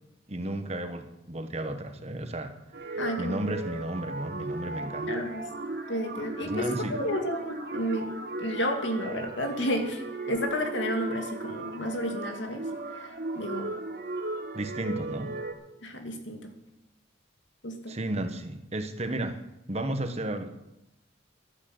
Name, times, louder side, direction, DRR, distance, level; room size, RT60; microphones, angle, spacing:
voice 1, 0.3-5.2 6.4-7.0 14.5-15.4 17.9-19.4 19.7-20.5, right 1 dB, 35° right, 7 dB, 1.3 m, -33 dB
sound 1, 2.7-15.5, right 2 dB, 55° right, 1.9 m, -36 dB
voice 2, 3.0-3.6 5.1-5.5 5.9-8.1 8.4-12.6 12.9-13.7 15.8-16.5 17.6-17.9, equal, 70° left, 4 dB, 2.4 m, -32 dB
12.5 x 10.5 x 7.9 m, 0.88 s
head